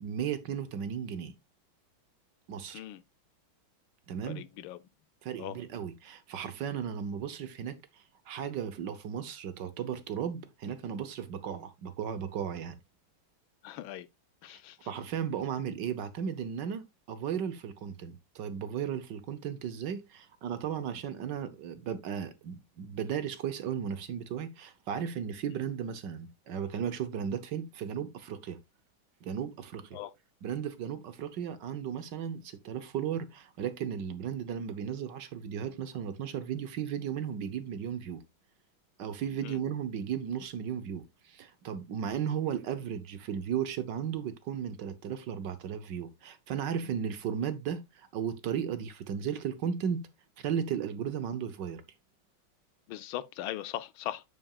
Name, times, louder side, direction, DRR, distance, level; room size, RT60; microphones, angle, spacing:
voice 1, 0.0-1.3 2.5-2.8 4.1-4.4 5.2-12.8 14.5-14.6 14.9-28.6 29.2-30.0 30.4-38.2 39.0-50.1 50.4-51.8, right 8 dB, 65° right, 1.5 m, -35 dB
voice 2, 4.3-4.8 5.4-5.6 13.6-14.1 14.4-14.8 29.9-30.1 39.4-39.6 52.9-54.2, left 13 dB, 80° left, 1.4 m, -39 dB
8.7 x 7.4 x 2.4 m
omnidirectional pair, 2.2 m